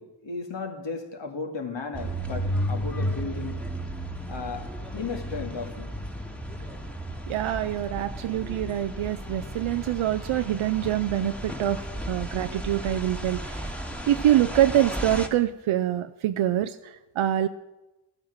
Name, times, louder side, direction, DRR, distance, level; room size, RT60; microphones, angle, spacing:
voice 1, 0.0-3.6 4.3-5.9, left 4 dB, 65° left, 5 dB, 2.2 m, -35 dB
sound 1, 1.9-15.3, equal, 5° left, 1.6 m, -34 dB
voice 2, 7.3-13.7 14.1-17.5, right 12 dB, 90° right, 8 dB, 0.6 m, -25 dB
14.0 x 9.0 x 7.2 m, 1.0 s
cardioid pair, 45°, 47 cm